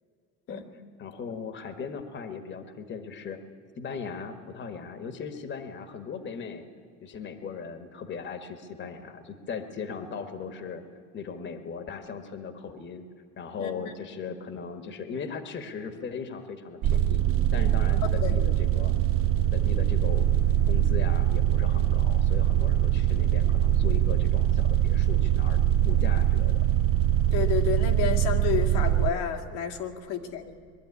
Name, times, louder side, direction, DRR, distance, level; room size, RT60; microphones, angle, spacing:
voice 1, 0.5-3.4 3.8-6.6 7.0-10.8 11.1-13.0 13.4-17.2 17.5-18.9 19.5-25.6 25.8-26.6, left 5 dB, 35° left, 9 dB, 1.4 m, -38 dB
sound 1, 16.8-29.1, right 12 dB, 40° right, 0.5 m, -23 dB
voice 2, 27.3-30.6, left 9 dB, 80° left, 3 dB, 2.3 m, -30 dB
22.0 x 12.0 x 9.7 m, 2.3 s
cardioid pair, 125°, 33 cm